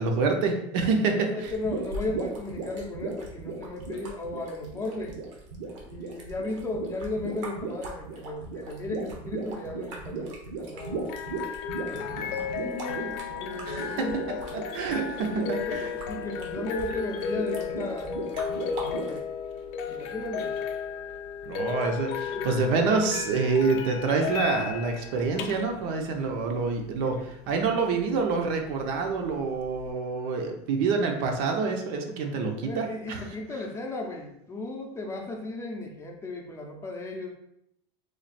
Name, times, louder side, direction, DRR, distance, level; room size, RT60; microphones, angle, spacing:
voice 1, 0.0-1.3 11.9-12.5 13.7-15.9 21.5-33.2, right 4 dB, 60° right, 3 dB, 0.7 m, -27 dB
voice 2, 1.3-5.2 5.8-11.2 12.0-14.2 15.4-18.2 18.6-19.2 19.9-20.6 22.3-22.6 27.0-27.3 32.6-37.3, left 2 dB, 20° left, 1 dB, 0.6 m, -35 dB
sound 1, 1.4-19.2, right 3 dB, 85° right, 1.0 m, -37 dB
sound 2, 10.8-29.9, left 7 dB, 65° left, 0.4 m, -35 dB
3.2 x 2.3 x 4.1 m, 0.79 s
supercardioid pair, 125°, 15 cm